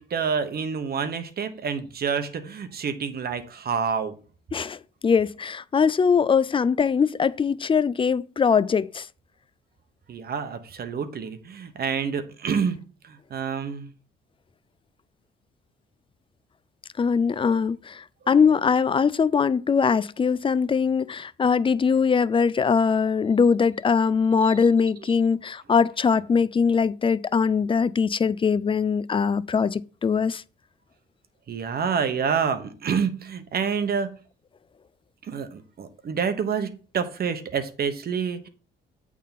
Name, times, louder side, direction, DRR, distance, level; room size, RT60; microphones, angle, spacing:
voice 1, 0.0-4.1 10.1-13.9 24.4-24.5 31.5-34.1 35.2-38.5, right 6 dB, 50° right, 1.1 m, -28 dB
voice 2, 4.5-9.1 17.0-30.4, left 6 dB, 25° left, 0.4 m, -22 dB
8.5 x 3.7 x 5.8 m
cardioid pair, 90°, 20 cm